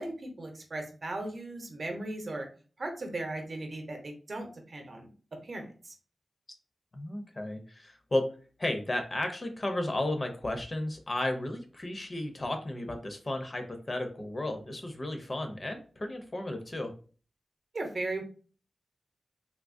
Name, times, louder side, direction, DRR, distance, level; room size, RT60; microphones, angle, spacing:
voice 1, 0.0-2.5 2.8-5.1 5.4-5.9 17.7-18.2, right 2 dB, 50° right, 3 dB, 0.7 m, -37 dB
voice 2, 6.9-8.3 8.6-16.9, left 1 dB, 30° left, 5 dB, 0.5 m, -33 dB
3.6 x 2.7 x 2.5 m, 0.39 s
wide cardioid pair, 140°, 0 cm